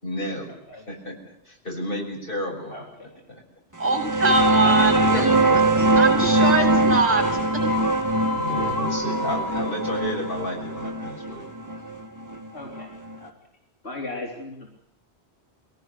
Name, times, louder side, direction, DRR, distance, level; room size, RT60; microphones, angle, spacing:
voice 1, 0.0-2.9 3.3-3.4 8.3-11.4, equal, 55° left, 1 dB, 6.8 m, -32 dB
voice 2, 2.7-3.1 4.6-6.0 12.5-12.9 13.2-13.3 13.8-14.7, left 2 dB, 85° left, -1 dB, 3.9 m, -33 dB
sound 1, 3.8-13.1, right 2 dB, 15° right, 1.9 m, -22 dB
voice 3, 3.8-7.6, right 3 dB, 40° right, 2 dB, 7.7 m, -23 dB
sound 2, 6.0-11.4, left 3 dB, 20° left, 2.8 m, -33 dB
23.0 x 18.0 x 8.2 m, 0.82 s
omnidirectional pair, 1.1 m